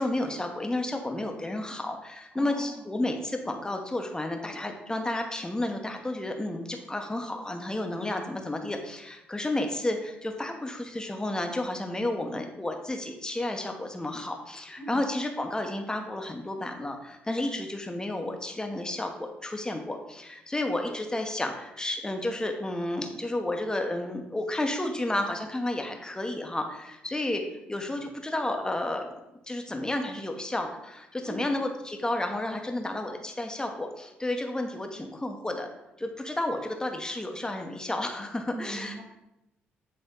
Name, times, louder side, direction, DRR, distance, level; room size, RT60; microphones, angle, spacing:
voice 1, 0.0-29.1 29.5-35.7 36.0-38.9, left 1 dB, 15° left, 4 dB, 1.1 m, -31 dB
voice 2, 2.3-2.9 14.8-15.0 31.2-31.4 38.5-39.0, right 1 dB, 35° right, -1 dB, 1.8 m, -40 dB
8.0 x 3.3 x 3.9 m, 0.88 s
supercardioid pair, 50°, 5 cm